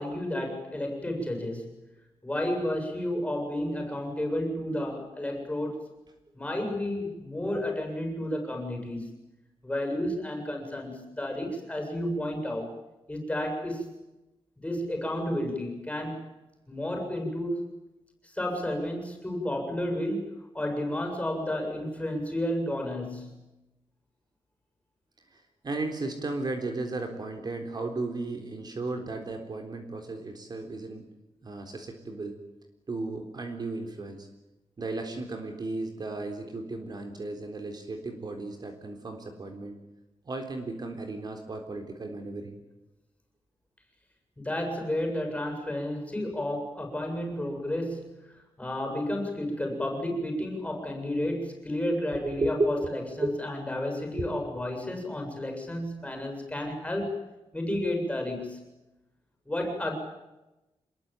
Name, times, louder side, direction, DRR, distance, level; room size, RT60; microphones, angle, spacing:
voice 1, 0.0-1.7 2.2-5.8 6.3-9.1 9.6-12.7 13.1-13.9 14.6-16.2 16.7-17.7 18.2-23.4 44.4-57.2 57.5-58.7 59.5-59.9, left 1 dB, 10° left, 4 dB, 7.5 m, -32 dB
voice 2, 25.3-31.1 31.4-32.4 32.9-34.3 34.8-39.8 40.2-42.6 52.1-53.4 54.2-54.3, right 2 dB, 40° right, 5 dB, 3.8 m, -34 dB
27.0 x 21.5 x 9.1 m, 0.99 s
wide cardioid pair, 140°, 11 cm